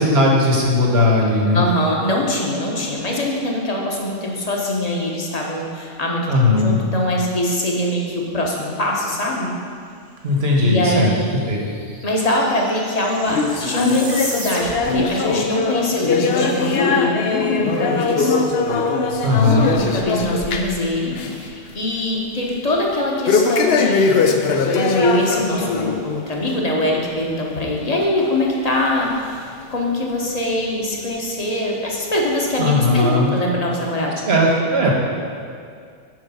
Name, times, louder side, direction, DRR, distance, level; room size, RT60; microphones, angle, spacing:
voice 1, 0.0-1.6 6.3-6.8 10.2-11.1 11.5-11.6 19.2-19.7 32.6-33.3 34.2-34.9, left 2 dB, 55° right, -1 dB, 1.4 m, -17 dB
voice 2, 1.5-9.5 10.6-11.4 12.0-18.4 19.3-34.1, left 1 dB, 35° left, -2 dB, 1.1 m, -23 dB
sound 1, 10.6-10.7 10.8-15.1, right 2 dB, 30° right, 0.8 m, -35 dB
sound 2, 13.3-20.8 21.1-21.5 21.8-21.9 23.3-25.9 26.3-26.5 27.2-27.3 28.2-28.3 29.1-29.2, left 4 dB, 60° left, 0.8 m, -20 dB
7.8 x 5.2 x 5.5 m, 2.2 s
omnidirectional pair, 1.3 m